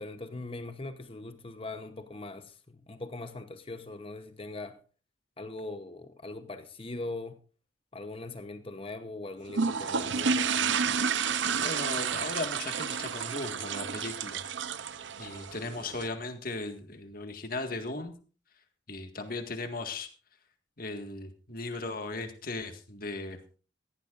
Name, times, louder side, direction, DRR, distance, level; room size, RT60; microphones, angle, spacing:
voice 1, 0.0-4.8 5.4-7.4 7.9-10.8, left 2 dB, 30° left, 0.9 m, -41 dB
sound 1, 9.5-16.1, right 6 dB, 65° right, 0.7 m, -31 dB
voice 2, 11.6-14.4 15.2-18.1 18.9-20.1 20.8-23.4, left 2 dB, 45° left, 1.9 m, -37 dB
18.0 x 15.0 x 2.6 m
head